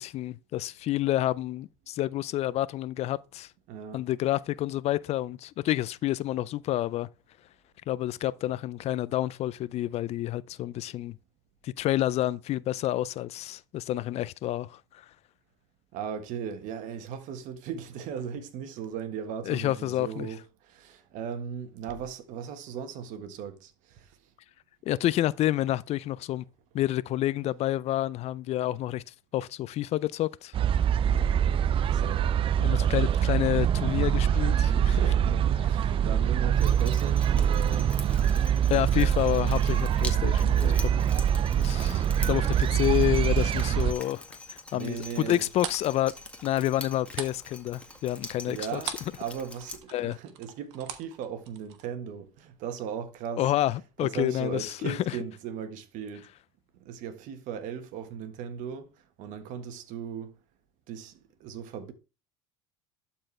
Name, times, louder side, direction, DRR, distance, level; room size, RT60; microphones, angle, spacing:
voice 1, 0.0-3.5 3.9-7.1 7.9-11.2 11.6-15.1 19.5-20.3 24.9-26.4 26.7-30.5 31.1-31.3 32.6-35.0 38.7-41.0 41.6-44.2 44.5-46.1 46.4-48.8 49.9-50.2 53.4-55.2, left 14 dB, 50° left, 0.4 m, -29 dB
voice 2, 3.7-4.0 15.9-24.2 31.9-32.3 32.8-33.2 34.9-38.0 40.4-40.8 42.4-42.7 44.7-45.4 48.4-53.5 54.0-56.3 56.7-58.9 59.2-60.4 60.9-61.1 61.4-61.9, right 7 dB, 65° right, 1.4 m, -37 dB
sound 1, 30.5-43.9, right 9 dB, 40° right, 0.5 m, -24 dB
Drip, 36.6-49.8, left 2 dB, 10° left, 1.8 m, -45 dB
sound 2, 45.2-49.2 49.5-51.9, right 10 dB, 80° right, 1.3 m, -40 dB
12.0 x 4.4 x 3.3 m
supercardioid pair, 95°, 14 cm